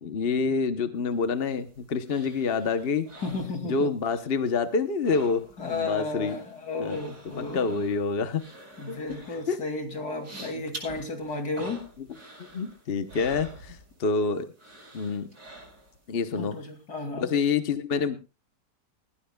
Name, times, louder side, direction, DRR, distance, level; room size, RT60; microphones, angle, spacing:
voice 1, 0.0-3.1 3.6-6.4 6.8-7.0 7.4-8.4 8.9-9.2 9.5-9.6 10.5-10.6 12.5-14.5 14.9-15.3 16.1-16.6 17.2-18.2, left 5 dB, 40° left, 10 dB, 0.9 m, -27 dB
sound 1, 1.1-4.2 4.4-5.8 6.0-14.2 14.6-16.1 16.5-16.6, right 2 dB, 75° right, 6.0 m, -47 dB
voice 2, 3.2-3.9 5.6-7.8 8.8-11.8 16.4-17.3, left 3 dB, 60° left, 4 dB, 3.2 m, -33 dB
20.0 x 15.5 x 2.3 m, 0.30 s
omnidirectional pair, 1.9 m